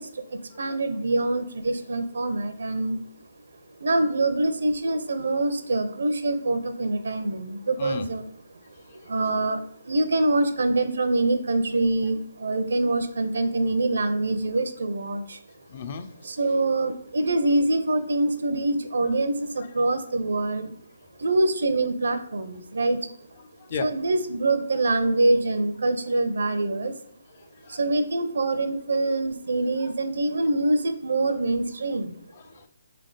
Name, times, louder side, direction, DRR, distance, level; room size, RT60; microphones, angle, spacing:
voice 1, 0.0-3.0 3.8-8.3 9.0-15.4 16.2-20.8 21.2-23.0 23.8-26.9 27.7-32.1, right 2 dB, 75° right, 10 dB, 0.5 m, -25 dB
voice 2, 15.7-16.1 23.7-23.9 27.4-27.8 32.3-32.7, left 6 dB, 40° left, 9 dB, 0.4 m, -35 dB
3.5 x 3.4 x 3.9 m, 0.69 s
figure-of-eight pair, 150°, 0 cm